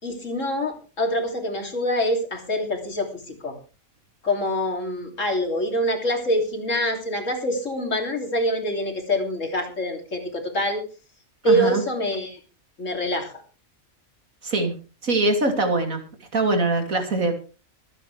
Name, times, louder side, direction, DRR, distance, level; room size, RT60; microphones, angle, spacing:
voice 1, 0.0-3.6 4.2-10.8 11.4-12.4 12.8-13.3, equal, 70° left, 3 dB, 3.4 m, -25 dB
voice 2, 11.4-11.8 14.4-14.7 15.0-16.0 16.3-17.3, right 2 dB, 90° right, 5 dB, 3.1 m, -22 dB
24.5 x 9.1 x 3.3 m, 0.34 s
omnidirectional pair, 1.4 m